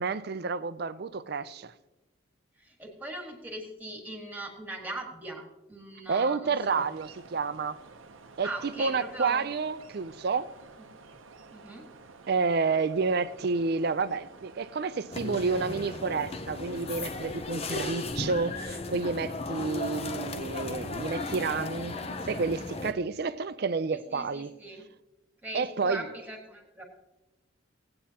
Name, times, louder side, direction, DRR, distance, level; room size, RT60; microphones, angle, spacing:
voice 1, 0.0-1.7 6.1-7.8 8.4-10.5 12.3-22.0 22.3-24.5 25.5-26.0, right 4 dB, 50° right, 0.4 m, -30 dB
voice 2, 2.6-6.8 8.4-9.4 11.5-11.9 23.9-24.9 25.4-26.8, right 2 dB, 10° right, 1.6 m, -40 dB
sound 1, 6.6-18.1, right 4 dB, 80° right, 0.8 m, -51 dB
sound 2, 15.1-22.9, left 2 dB, 30° left, 0.6 m, -36 dB
17.0 x 8.7 x 2.9 m
head